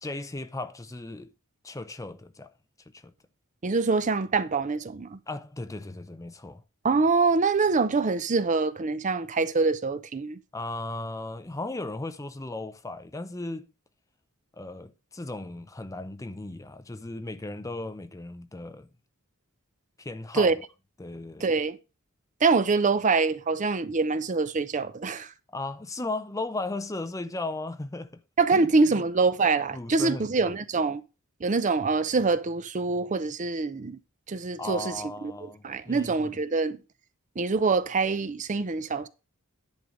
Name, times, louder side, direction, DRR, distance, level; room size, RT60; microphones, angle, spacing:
voice 1, 0.0-1.3 1.6-2.5 2.9-3.1 5.3-6.6 10.5-13.7 14.6-18.9 20.0-20.6 21.0-21.5 25.5-28.2 28.5-29.0 29.7-30.6 34.6-36.4, left 2 dB, 15° left, 0.5 m, -36 dB
voice 2, 3.6-5.2 6.8-10.4 20.3-20.5 21.4-21.8 22.4-25.3 28.4-31.0 31.4-34.0 34.3-34.9 35.6-36.8 37.4-39.1, right 4 dB, 35° right, 0.5 m, -25 dB
10.5 x 3.9 x 6.4 m
head